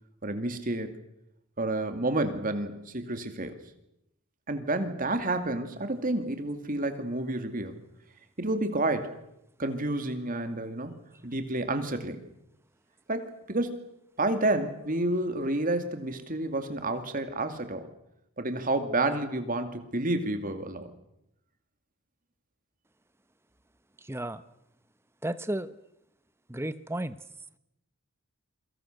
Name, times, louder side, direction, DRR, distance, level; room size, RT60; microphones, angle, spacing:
voice 1, 0.2-0.9 1.6-3.6 4.5-7.8 8.4-9.1 9.6-11.0 11.2-12.2 13.1-13.9 14.2-17.9 18.4-20.9, right 2 dB, 40° right, 8 dB, 2.4 m, -30 dB
voice 2, 24.0-24.4 25.2-25.8 26.5-27.2, right 1 dB, 10° right, 13 dB, 0.9 m, -33 dB
28.5 x 23.5 x 6.7 m, 0.84 s
head